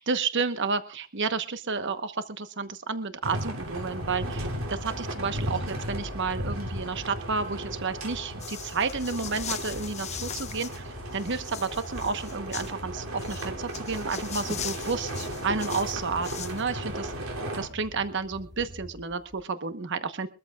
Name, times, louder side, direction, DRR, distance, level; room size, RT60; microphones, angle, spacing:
voice 1, 0.1-17.1 17.5-20.3, right 4 dB, 60° right, 10 dB, 1.1 m, -31 dB
sound 1, 3.2-17.7, right 1 dB, 85° right, 3.1 m, -36 dB
sound 2, 3.8-19.4, equal, 20° right, 2.4 m, -44 dB
sound 3, 8.4-10.8 11.1-12.7 13.2-16.6, left 8 dB, 35° left, 0.7 m, -39 dB
23.5 x 13.5 x 2.4 m, 0.31 s
head